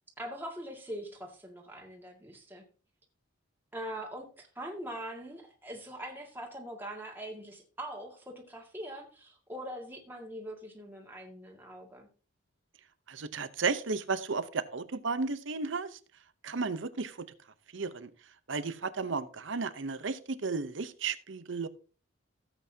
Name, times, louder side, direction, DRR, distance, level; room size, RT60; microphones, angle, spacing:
voice 1, 0.2-2.6 3.7-12.1, right 1 dB, 10° right, 0 dB, 2.0 m, -42 dB
voice 2, 13.1-15.9 16.4-17.3 17.7-18.1 18.5-21.7, right 4 dB, 60° right, 14 dB, 0.8 m, -33 dB
16.0 x 8.0 x 2.8 m, 0.36 s
head